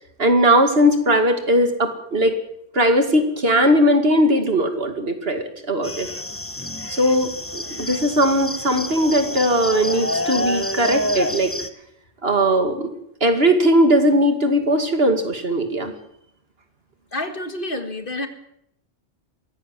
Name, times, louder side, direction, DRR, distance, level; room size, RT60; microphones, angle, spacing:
voice 1, 0.2-2.4 2.7-6.1 6.9-11.5 12.2-12.9 13.2-15.9, equal, 65° right, 7 dB, 2.6 m, -19 dB
sound 1, 5.8-11.7, left 1 dB, 15° left, 1.0 m, -28 dB
voice 2, 17.1-18.3, left 1 dB, 55° left, 8 dB, 2.2 m, -28 dB
22.5 x 16.5 x 7.6 m, 0.74 s
omnidirectional pair, 1.1 m